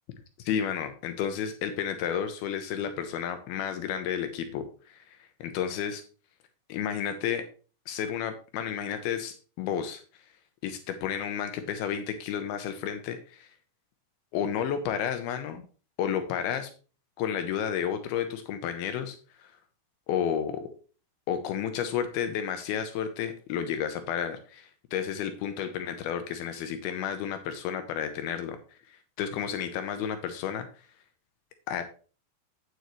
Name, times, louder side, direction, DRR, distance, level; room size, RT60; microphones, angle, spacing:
voice 1, 0.5-6.0 6.7-7.4 7.9-10.0 10.6-13.5 14.3-15.6 16.0-16.7 17.2-19.5 20.1-20.7 21.3-30.7 31.7-31.9, left 8 dB, 85° left, 8 dB, 2.2 m, -32 dB
9.1 x 8.0 x 3.1 m, 0.37 s
omnidirectional pair, 5.4 m